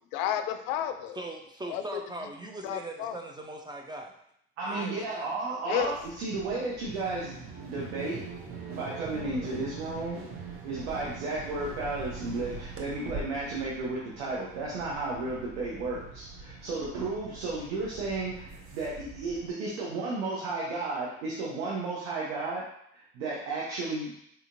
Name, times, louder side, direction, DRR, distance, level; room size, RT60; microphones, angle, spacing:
voice 1, 0.1-1.2 1.7-2.0 2.6-3.2 5.7-5.9, left 10 dB, 75° left, 8 dB, 0.5 m, -31 dB
voice 2, 1.2-4.1 4.6-5.3, right 1 dB, 15° right, 2 dB, 0.4 m, -40 dB
voice 3, 4.6-8.2 8.7-10.2 10.6-22.6 22.9-24.1, right 3 dB, 85° right, -5 dB, 0.9 m, -33 dB
sound 1, 5.8-19.5, right 4 dB, 40° right, 0.8 m, -43 dB
4.2 x 2.8 x 2.6 m, 0.73 s
hypercardioid pair, 75°, 34 cm